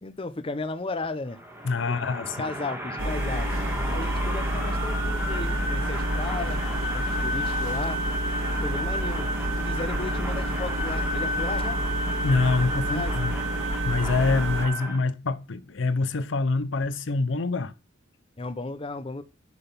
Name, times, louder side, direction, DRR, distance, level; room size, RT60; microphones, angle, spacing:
voice 1, 0.0-1.4 1.8-3.5 3.9-6.6 6.9-8.0 8.6-9.3 9.6-11.8 12.9-13.1 18.4-19.2, left 3 dB, 30° left, 0.7 m, -34 dB
sound 1, 1.3-15.0, right 1 dB, 10° right, 1.7 m, -32 dB
voice 2, 1.6-2.5 12.2-13.4 13.8-17.7, left 3 dB, 70° left, 0.7 m, -25 dB
sound 2, 3.0-14.7, equal, 80° right, 1.9 m, -29 dB
10.5 x 4.0 x 6.9 m
head